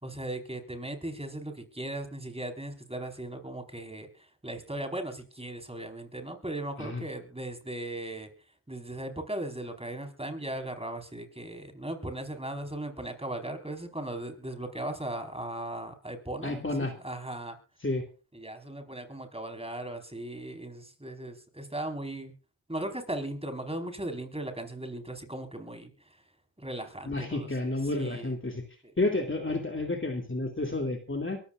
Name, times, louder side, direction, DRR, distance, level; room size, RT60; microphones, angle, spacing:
voice 1, 0.0-8.3 8.7-17.6 18.3-22.3 22.7-25.9 26.6-27.5 27.9-28.3, right 1 dB, 15° right, 5 dB, 4.5 m, -37 dB
voice 2, 16.4-16.9 17.8-18.1 27.1-28.6 29.0-31.4, left 2 dB, 25° left, 3 dB, 2.5 m, -30 dB
23.0 x 14.5 x 2.5 m, 0.34 s
cardioid pair, 45°, 44 cm